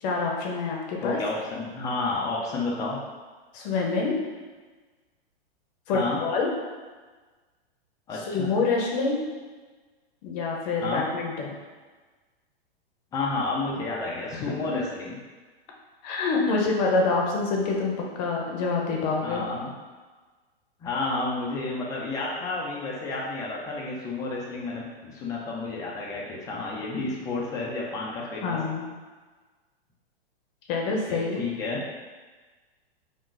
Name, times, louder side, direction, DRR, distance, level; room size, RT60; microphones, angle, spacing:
voice 1, 0.0-1.2 3.5-4.2 5.9-6.5 8.2-9.2 10.2-11.5 14.3-14.5 16.0-19.4 28.4-28.9 30.7-31.4, left 3 dB, 40° left, -1 dB, 0.7 m, -26 dB
voice 2, 1.0-3.0 5.9-6.2 8.1-8.5 10.8-11.0 13.1-15.2 19.2-19.7 20.8-28.6 30.9-31.8, left 3 dB, 10° left, -3 dB, 0.3 m, -31 dB
2.5 x 2.3 x 3.7 m, 1.4 s
hypercardioid pair, 130°, 31 cm